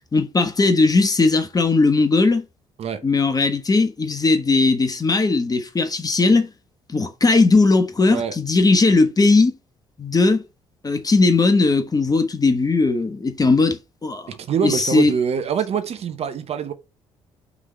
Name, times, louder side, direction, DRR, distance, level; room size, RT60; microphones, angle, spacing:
voice 1, 0.1-2.4 3.0-6.5 6.9-9.5 10.0-10.4 10.8-14.3 14.6-15.1, left 3 dB, 25° left, 1.4 m, -18 dB
voice 2, 14.3-16.7, right 7 dB, 45° right, 1.0 m, -24 dB
6.1 x 3.8 x 4.6 m
figure-of-eight pair, 45°, 15 cm